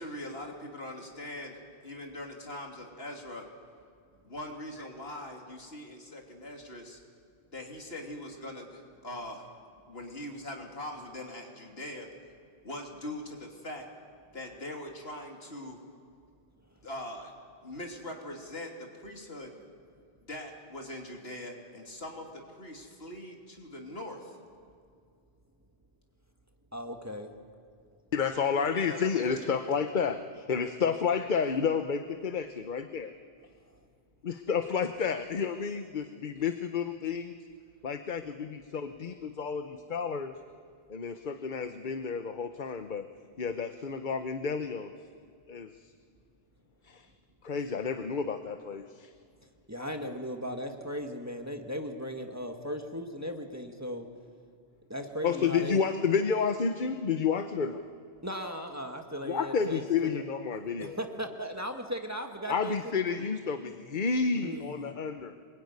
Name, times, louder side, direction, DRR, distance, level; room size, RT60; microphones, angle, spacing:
voice 1, 0.0-1.6 1.8-3.5 4.2-7.0 7.5-9.5 9.9-12.1 12.6-13.9 14.3-15.8 16.8-17.3 17.6-19.5 20.2-24.4 28.6-29.6, left 1 dB, 65° left, 1 dB, 3.3 m, -42 dB
voice 2, 26.7-27.3 49.7-54.1 54.9-55.8 58.2-60.2 60.8-62.8 63.1-63.2 64.3-65.0, equal, 15° right, 4 dB, 1.7 m, -37 dB
voice 3, 28.1-33.1 34.2-37.4 37.8-40.4 40.9-43.1 43.4-44.9 45.5-45.9 46.8-47.1 47.4-49.1 55.2-57.8 59.2-61.0 62.5-65.3, left 6 dB, 50° left, 8 dB, 1.0 m, -30 dB
26.0 x 22.0 x 9.6 m, 2.2 s
omnidirectional pair, 1.1 m